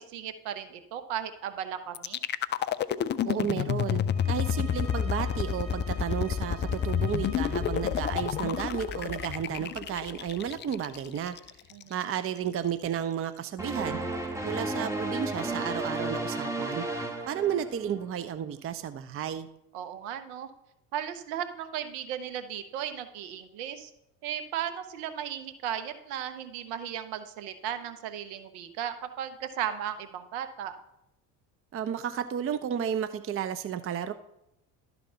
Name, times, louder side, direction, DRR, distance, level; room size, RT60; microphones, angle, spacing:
voice 1, 0.0-2.2 11.7-11.9 19.7-20.5 20.9-23.9 24.2-30.8, right 9 dB, 70° right, 9 dB, 1.1 m, -36 dB
sound 1, 1.9-11.9, left 9 dB, 25° left, 0.3 m, -30 dB
voice 2, 3.2-11.4 11.9-14.0 14.5-16.8 17.3-19.5 31.7-34.1, right 9 dB, 30° right, 11 dB, 0.6 m, -32 dB
sound 2, 4.0-9.4, equal, 50° right, 3.5 m, -48 dB
sound 3, 13.6-18.1, right 2 dB, 5° right, 1.8 m, -33 dB
12.0 x 4.2 x 5.6 m, 0.84 s
hypercardioid pair, 65°, 46 cm